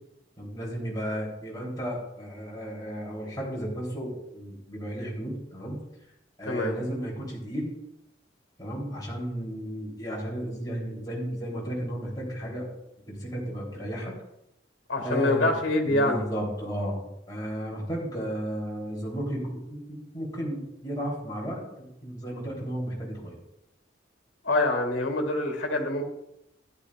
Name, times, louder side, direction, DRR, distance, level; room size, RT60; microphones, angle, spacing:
voice 1, 0.4-5.8 6.4-7.7 8.6-12.7 13.1-14.1 15.0-15.5 15.9-23.4, equal, 20° left, -5 dB, 3.5 m, -34 dB
voice 2, 6.4-6.8 14.9-16.3 24.4-26.0, left 2 dB, 75° left, 3 dB, 2.1 m, -25 dB
14.0 x 11.0 x 2.5 m, 0.85 s
head